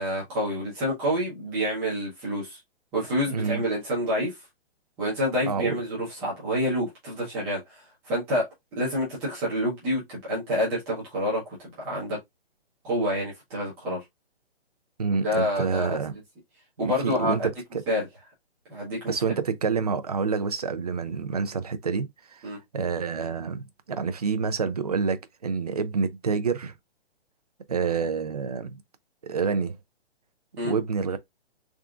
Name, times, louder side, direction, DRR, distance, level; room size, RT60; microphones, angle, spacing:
voice 1, 0.0-2.6 2.9-4.4 5.0-12.2 12.8-14.0 15.2-16.0 16.8-17.3 17.9-18.1 18.7-19.1 22.4-22.6 30.6-30.7, equal, 5° right, 0.8 m, -28 dB
voice 2, 3.3-3.6 5.5-5.8 15.0-16.2 16.8-17.8 19.1-22.4 22.7-26.7 27.7-28.8 29.3-29.8 30.6-31.2, right 5 dB, 40° right, 0.5 m, -28 dB
3.6 x 3.5 x 2.4 m
hypercardioid pair, 175°, 32 cm